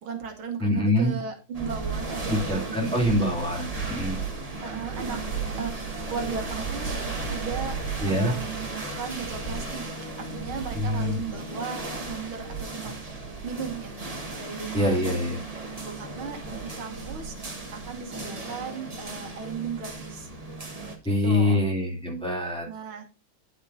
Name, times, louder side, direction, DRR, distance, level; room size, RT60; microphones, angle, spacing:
voice 1, 0.0-3.6 4.6-5.2 5.6-5.7 6.1-9.8 10.2-12.9 13.4-14.0 14.4-15.0 15.8-17.4 17.7-20.3 21.0-21.6 22.7-23.2, right 6 dB, 70° right, 4 dB, 2.0 m, -36 dB
voice 2, 0.6-1.1 2.3-4.2 8.0-8.3 10.8-11.2 14.7-15.4 21.0-22.7, left 1 dB, ahead, -2 dB, 2.5 m, -25 dB
sound 1, 1.5-21.0, right 3 dB, 20° right, 1.3 m, -35 dB
9.9 x 8.1 x 2.7 m, 0.31 s
omnidirectional pair, 2.4 m